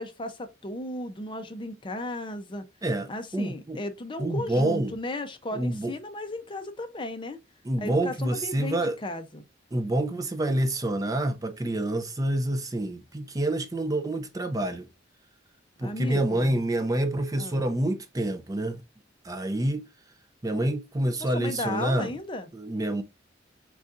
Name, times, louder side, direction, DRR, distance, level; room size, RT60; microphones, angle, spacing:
voice 1, 0.0-2.6 3.1-7.4 7.8-9.4 15.8-16.6 17.4-17.7 21.2-22.5, left 1 dB, 25° left, 0.6 m, -35 dB
voice 2, 2.8-3.8 4.2-4.9 5.5-5.9 7.6-9.0 9.7-14.9 15.8-18.8 19.2-19.9 20.4-22.1 22.5-23.0, right 1 dB, 20° right, 0.4 m, -27 dB
4.6 x 4.0 x 2.4 m
head